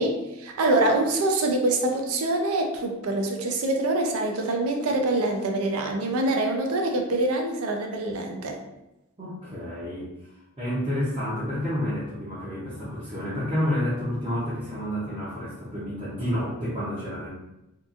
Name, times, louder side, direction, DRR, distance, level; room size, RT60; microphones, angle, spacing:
voice 1, 0.0-8.6, right 2 dB, 80° right, 3 dB, 0.5 m, -25 dB
voice 2, 9.2-10.1 10.6-17.3, equal, 25° right, -10 dB, 0.6 m, -29 dB
2.8 x 2.4 x 2.4 m, 0.95 s
head